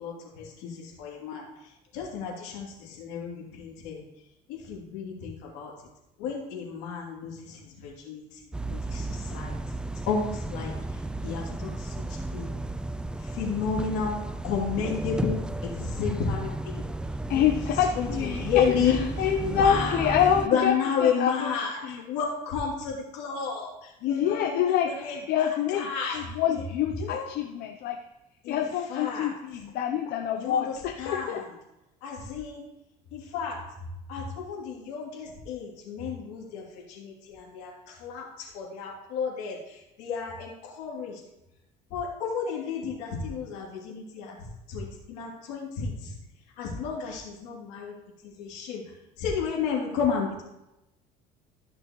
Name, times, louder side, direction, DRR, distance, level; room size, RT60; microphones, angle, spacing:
voice 1, 0.0-4.0 4.5-5.7 6.2-9.6 10.1-12.5 13.2-14.2 14.4-16.9 17.3-17.6 18.0-20.1 20.5-26.2 26.5-26.6 27.0-27.3 28.4-28.6 28.9-29.3 30.4-31.5 32.0-32.7 33.1-33.6 34.1-41.2 41.9-46.2 46.6-47.9 48.2-48.8 49.2-50.4, left 6 dB, 80° left, -2 dB, 2.9 m, -32 dB
sound 1, 8.5-20.5, right 2 dB, 5° right, 0.3 m, -34 dB
voice 2, 17.3-18.4 18.9-20.7 21.0-21.5 21.8-22.0 24.1-25.9 26.1-28.0 28.5-31.4, left 9 dB, 65° left, 4 dB, 0.7 m, -26 dB
14.0 x 6.2 x 3.1 m, 0.92 s
supercardioid pair, 105°, 17 cm